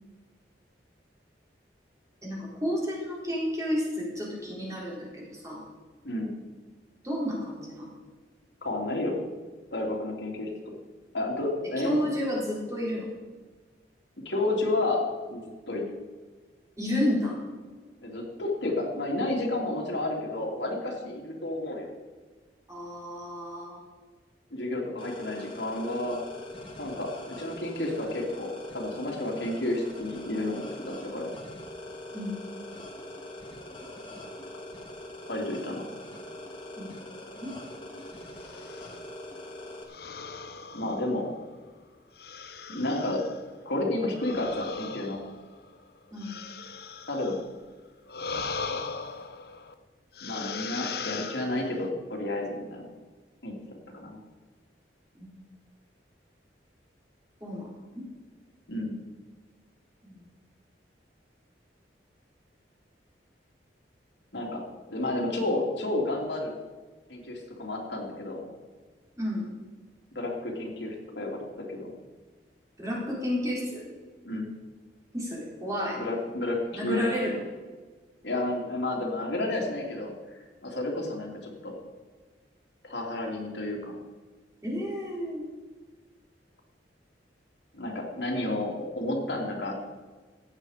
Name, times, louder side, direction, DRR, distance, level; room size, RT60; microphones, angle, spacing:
voice 1, 2.2-5.7 7.0-7.9 11.8-13.1 15.7-15.8 16.8-17.4 22.7-23.8 32.1-32.4 36.8-36.9 37.4-37.5 46.1-46.3 55.2-55.4 57.4-58.0 60.0-60.2 69.2-69.4 72.8-73.9 75.1-76.0 76.7-77.4 84.6-85.5, left 1 dB, 15° right, -4 dB, 4.0 m, -31 dB
voice 2, 8.6-9.2 9.7-10.5 11.1-11.9 14.2-16.0 18.0-21.9 24.5-26.2 26.8-27.1 27.4-31.3 35.3-35.8 40.7-41.3 42.7-43.3 43.6-45.2 47.1-47.4 50.2-52.8 53.4-53.6 53.9-54.2 58.7-59.0 64.3-64.6 64.9-66.6 67.1-68.4 70.1-71.9 74.2-74.5 76.0-77.1 78.2-80.1 80.6-81.7 82.8-83.9 87.7-89.7, left 2 dB, 75° left, -1 dB, 2.9 m, -31 dB
sound 1, 25.0-39.8, left 1 dB, 30° left, 2.2 m, -42 dB
sound 2, 38.3-39.0 39.9-41.5 42.2-43.4 44.1-47.5 48.1-49.7 50.2-51.9, left 4 dB, 60° left, 0.9 m, -38 dB
15.0 x 9.6 x 5.0 m, 1.4 s
head